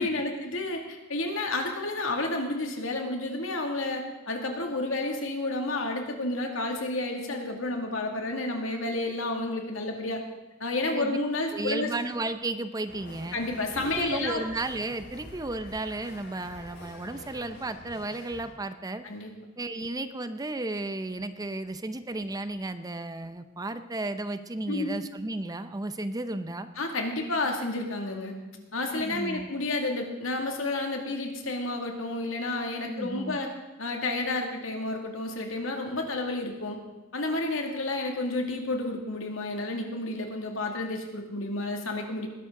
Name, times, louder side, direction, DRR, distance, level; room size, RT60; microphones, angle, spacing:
voice 1, 0.0-10.2 10.6-11.9 13.3-14.4 19.0-19.3 24.7-25.0 26.8-28.3 28.7-33.5 33.8-36.8 37.1-42.3, left 2 dB, 90° left, 2 dB, 2.2 m, -31 dB
voice 2, 10.9-11.2 11.5-13.4 13.8-19.0 19.6-26.7 28.9-29.5 32.9-33.4, right 2 dB, 20° right, 11 dB, 0.6 m, -33 dB
sound 1, 12.8-18.5, left 1 dB, 65° left, 5.2 m, -47 dB
20.0 x 11.5 x 3.8 m, 1.1 s
head